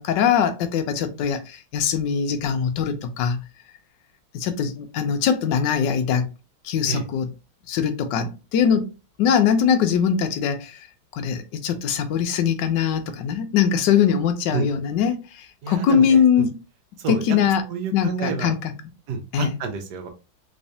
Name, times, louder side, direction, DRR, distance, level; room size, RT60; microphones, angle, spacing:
voice 1, 0.0-3.4 4.3-6.3 6.6-7.3 7.7-8.9 9.2-10.9 11.1-16.6 17.1-17.6 17.9-18.7 19.3-19.6, left 7 dB, 75° left, 1.1 m, -22 dB
voice 2, 15.6-16.2 17.0-17.2 17.6-18.5 19.1-20.1, right 4 dB, 65° right, 1.2 m, -29 dB
3.4 x 3.2 x 2.6 m
omnidirectional pair, 2.3 m